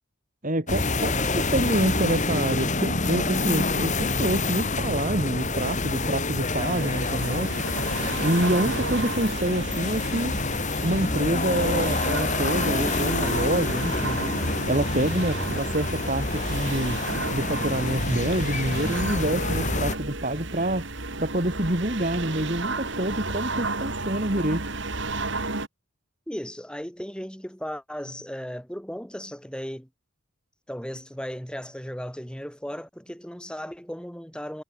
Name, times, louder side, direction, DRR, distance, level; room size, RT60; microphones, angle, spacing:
voice 1, 0.4-1.1 1.5-7.6 8.2-10.4 10.8-14.3 14.7-17.0 17.3-20.9 21.2-24.7, right 1 dB, 35° right, 2.8 m, -27 dB
sound 1, 0.7-20.0, left 3 dB, 35° left, 3.2 m, -27 dB
voice 2, 1.0-1.5 8.5-8.9 26.3-29.9 30.7-34.6, equal, 5° left, 5.5 m, -36 dB
sound 2, 6.6-25.7, right 3 dB, 60° right, 3.8 m, -33 dB
head